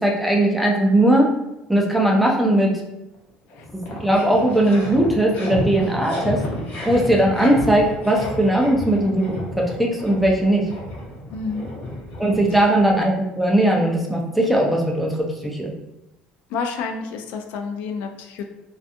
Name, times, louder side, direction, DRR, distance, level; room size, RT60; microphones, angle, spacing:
voice 1, 0.0-1.3 1.7-2.7 4.0-6.4 6.8-9.4 9.8-10.6 12.2-15.2 15.4-15.7, right 1 dB, ahead, -1 dB, 0.4 m, -18 dB
sound 1, 3.1-3.2 3.5-12.9, left 1 dB, 55° left, 0.9 m, -31 dB
voice 2, 11.3-11.7 16.5-18.4, left 5 dB, 70° left, 5 dB, 0.4 m, -29 dB
2.5 x 2.3 x 2.5 m, 0.93 s
cardioid pair, 140°, 3 cm